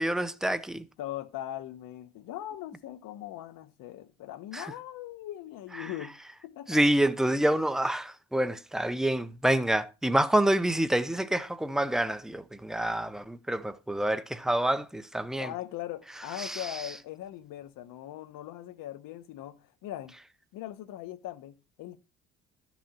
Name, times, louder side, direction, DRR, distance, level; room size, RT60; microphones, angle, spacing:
voice 1, 0.0-0.8 4.5-4.7 5.8-5.9 6.7-15.5 16.4-16.6, right 1 dB, ahead, 0.7 m, -27 dB
voice 2, 1.0-6.1 6.4-6.8 15.4-20.1 20.5-22.0, left 13 dB, 85° left, 1.2 m, -40 dB
12.5 x 6.1 x 4.3 m
cardioid pair, 115°, 32 cm